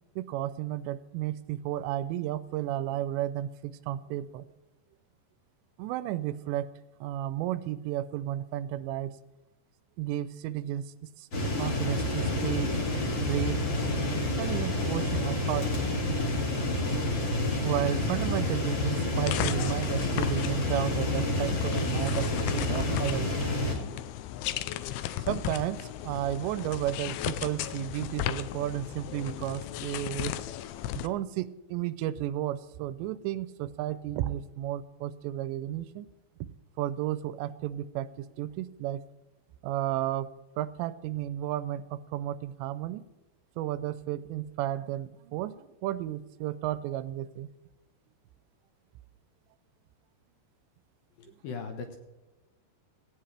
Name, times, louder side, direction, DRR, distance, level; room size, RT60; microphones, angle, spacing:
voice 1, 0.2-4.5 5.8-6.7 7.0-9.2 10.0-11.3 11.6-12.7 13.2-13.7 14.4-15.9 17.6-23.5 25.3-30.3 30.9-36.1 36.4-39.0 39.6-40.3 40.6-43.0 43.6-47.5 51.3-51.4, right 13 dB, 85° right, 14 dB, 2.8 m, -33 dB
sound 1, 11.3-23.7, left 1 dB, 35° left, 2.2 m, -29 dB
sound 2, 19.3-31.1, left 12 dB, 80° left, 2.3 m, -35 dB
voice 2, 51.2-52.0, left 5 dB, 65° left, 4 dB, 2.6 m, -39 dB
17.0 x 16.5 x 3.4 m, 1.1 s
omnidirectional pair, 5.1 m